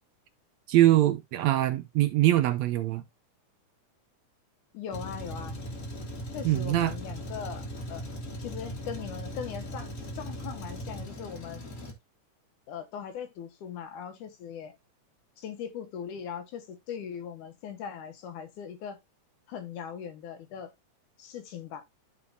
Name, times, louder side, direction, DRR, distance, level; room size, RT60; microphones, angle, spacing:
voice 1, 0.7-3.0 6.4-6.9, right 14 dB, 75° right, 1.7 m, -23 dB
voice 2, 4.7-5.6 6.3-8.0 8.4-11.6 12.7-14.8 15.4-19.0 19.5-20.7 21.2-21.8, left 8 dB, 85° left, 2.8 m, -40 dB
Truck, 4.9-11.9, equal, 35° left, 1.5 m, -39 dB
13.0 x 4.5 x 2.7 m
omnidirectional pair, 3.5 m